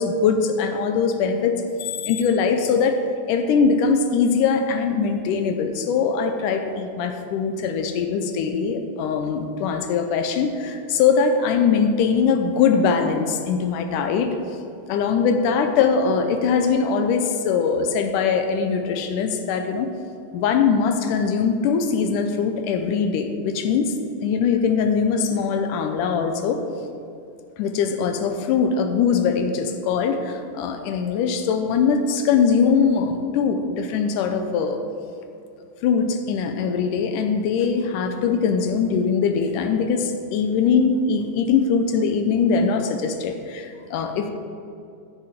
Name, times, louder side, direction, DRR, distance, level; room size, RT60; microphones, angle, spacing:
voice 1, 0.0-3.0 3.3-14.3 14.9-19.9 20.3-23.9 24.2-26.6 27.6-34.8 35.8-44.3, left 6 dB, 75° left, 7 dB, 2.2 m, -21 dB
13.5 x 6.8 x 5.1 m, 2.5 s
omnidirectional pair, 3.9 m